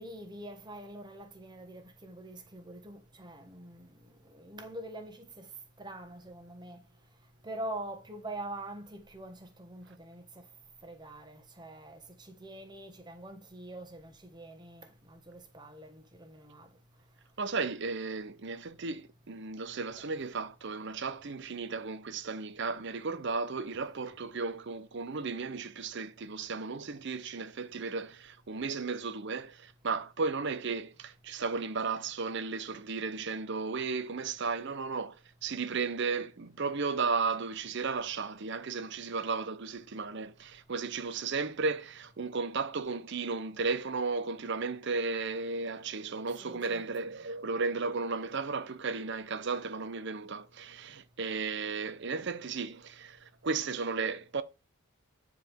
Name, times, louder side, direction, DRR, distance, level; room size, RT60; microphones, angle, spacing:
voice 1, 0.0-3.9 4.3-5.5 5.8-6.8 7.4-10.2 10.8-16.7 46.4-46.9, right 1 dB, 20° right, 1.2 m, -44 dB
voice 2, 17.4-54.4, right 4 dB, 50° right, 0.6 m, -34 dB
9.2 x 4.9 x 3.5 m
head